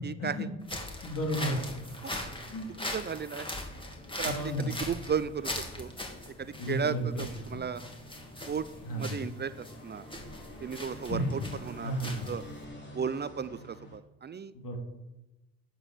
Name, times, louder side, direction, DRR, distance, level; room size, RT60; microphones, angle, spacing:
voice 1, 0.0-0.5 2.0-2.1 2.9-3.6 4.2-5.9 6.4-7.8 8.5-8.7 9.0-10.0 10.6-12.4 12.9-14.5, right 7 dB, 30° right, 14 dB, 0.5 m, -35 dB
sound 1, 0.6-12.7, left 1 dB, 15° left, 2.5 m, -40 dB
voice 2, 1.0-1.7 2.5-2.7 4.2-4.7 6.6-7.2 7.5-7.6 8.8-9.1 11.1-12.3 14.5-14.8, equal, 65° left, 2 dB, 3.3 m, -33 dB
sound 2, 1.2-14.0, left 1 dB, 30° left, 3.5 m, -49 dB
9.7 x 7.3 x 6.9 m, 0.98 s
supercardioid pair, 65°, 35 cm